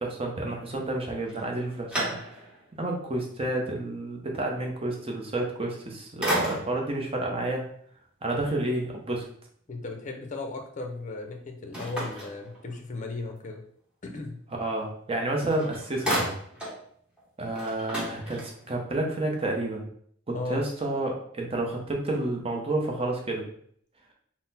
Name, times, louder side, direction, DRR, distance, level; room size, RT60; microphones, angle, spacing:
voice 1, 0.0-2.2 2.8-7.7 8.2-9.3 14.5-16.2 17.4-19.8 20.3-23.5, right 2 dB, 30° right, 0 dB, 0.7 m, -30 dB
sound 1, 1.3-2.7 3.2-3.3 5.6-5.9 6.2-7.0 11.7-13.0 15.1-15.2 15.5-16.8 17.2-17.3 17.5-18.8, right 1 dB, 5° right, 1.1 m, -32 dB
voice 2, 9.7-13.6 14.0-14.4 20.3-20.6, left 3 dB, 40° left, 4 dB, 0.6 m, -36 dB
3.9 x 2.1 x 4.1 m, 0.63 s
head